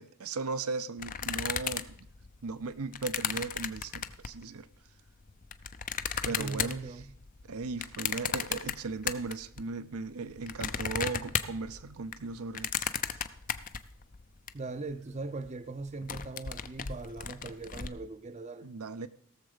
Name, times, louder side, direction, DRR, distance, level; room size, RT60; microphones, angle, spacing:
voice 1, 0.0-2.1 2.4-4.7 6.2-6.9 7.5-12.9 18.6-19.1, right 4 dB, 85° right, 0.6 m, -37 dB
sound 1, 1.0-4.4 5.1-9.6 10.0-14.5 14.9-15.0 15.2-15.5 15.8-17.9, left 8 dB, 40° left, 0.5 m, -35 dB
voice 2, 6.2-7.1 14.5-18.7, right 3 dB, 30° right, 0.5 m, -40 dB
17.0 x 7.0 x 5.0 m
head